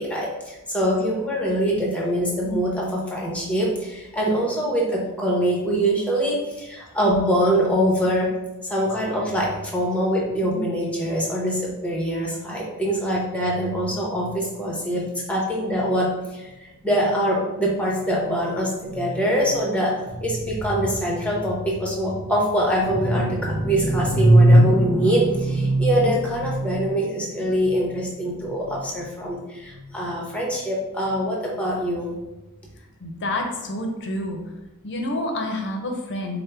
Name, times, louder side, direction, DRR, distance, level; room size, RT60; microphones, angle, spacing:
voice 1, 0.0-8.3 8.7-32.1, right 1 dB, 5° left, -3 dB, 0.8 m, -22 dB
voice 2, 33.0-34.4 34.8-36.4, left 1 dB, 55° left, 2 dB, 0.6 m, -28 dB
4.4 x 2.1 x 3.3 m, 1.0 s
head